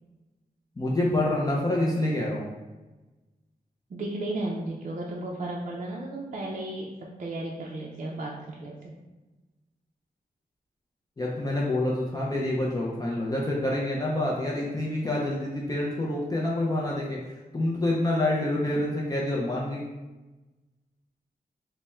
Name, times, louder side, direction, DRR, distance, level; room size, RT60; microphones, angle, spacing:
voice 1, 0.8-2.5 11.2-17.2 17.5-19.8, left 1 dB, 25° left, -4 dB, 0.5 m, -27 dB
voice 2, 3.9-8.9, right 2 dB, 50° right, -3 dB, 0.4 m, -34 dB
3.4 x 2.1 x 4.1 m, 1.1 s
wide cardioid pair, 145°, 16 cm